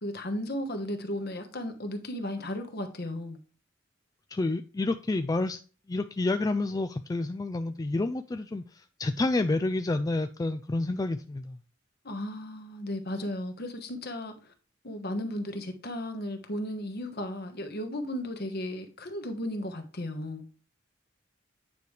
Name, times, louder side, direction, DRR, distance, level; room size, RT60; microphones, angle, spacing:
voice 1, 0.0-3.4 12.0-14.5 14.8-20.5, left 1 dB, 55° left, 1.3 m, -35 dB
voice 2, 4.3-5.6 5.9-11.6, left 2 dB, 20° left, 0.3 m, -29 dB
9.2 x 5.0 x 3.2 m
head